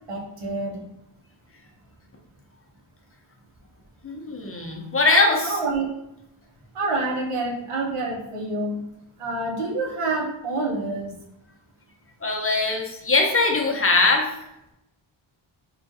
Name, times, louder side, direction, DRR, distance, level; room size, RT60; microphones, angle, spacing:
voice 1, 0.1-0.8 5.4-5.9 6.7-8.8 9.2-11.2, right 2 dB, 90° right, -2 dB, 0.9 m, -27 dB
voice 2, 4.0-5.6 12.2-14.3, left 3 dB, 30° left, 1 dB, 0.6 m, -21 dB
3.7 x 2.4 x 2.6 m, 0.83 s
wide cardioid pair, 70°, 50 cm